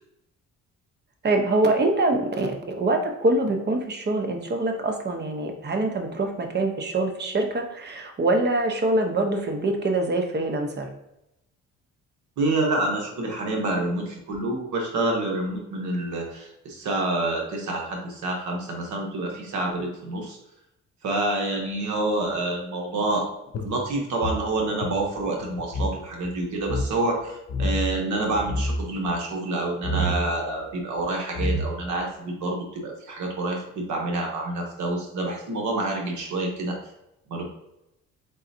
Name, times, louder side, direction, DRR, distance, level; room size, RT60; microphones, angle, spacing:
voice 1, 1.2-10.9, right 2 dB, 35° right, 4 dB, 0.8 m, -24 dB
voice 2, 12.4-20.4 21.0-23.3 23.6-36.8 37.3-37.4, right 2 dB, 75° right, 0 dB, 1.1 m, -27 dB
sound 1, 23.5-26.0 26.2-26.3 26.6-26.9 27.5-28.0 28.3-28.9 29.8-30.2 31.0-31.1 31.3-32.0, equal, 50° left, 0.8 m, -27 dB
3.9 x 3.9 x 2.7 m, 0.86 s
cardioid pair, 90°, 30 cm